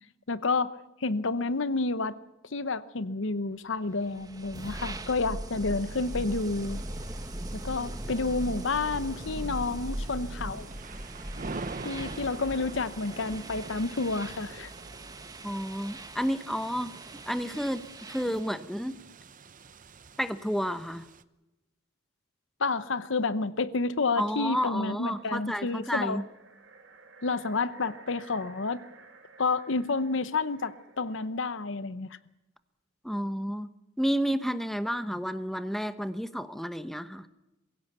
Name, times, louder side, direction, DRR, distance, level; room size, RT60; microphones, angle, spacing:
voice 1, 0.3-0.7 1.0-2.1 2.5-6.8 7.5-10.7 11.8-14.7 22.6-26.2 27.2-28.8 29.4-32.1, left 3 dB, 65° left, 0.9 m, -30 dB
sound 1, 3.9-18.6, right 1 dB, 20° right, 1.4 m, -40 dB
sound 2, 5.2-21.2, right 3 dB, 40° right, 0.8 m, -46 dB
voice 2, 15.4-16.9 17.2-19.0 20.2-21.0 24.2-26.2 33.0-33.7 34.0-37.3, equal, ahead, 0.8 m, -31 dB
sound 3, 24.9-31.4, right 4 dB, 65° right, 2.6 m, -54 dB
22.5 x 16.0 x 8.4 m
head